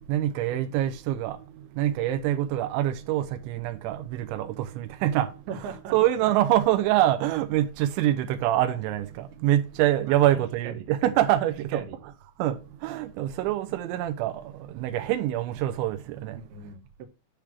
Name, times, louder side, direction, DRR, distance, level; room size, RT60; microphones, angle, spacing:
voice 1, 0.1-5.4 5.9-11.8 12.4-16.4, right 13 dB, 90° right, 3.1 m, -25 dB
voice 2, 5.5-5.9 10.1-10.9 11.4-12.0 16.4-17.1, right 6 dB, 70° right, 2.9 m, -39 dB
10.5 x 3.5 x 6.1 m
omnidirectional pair, 5.3 m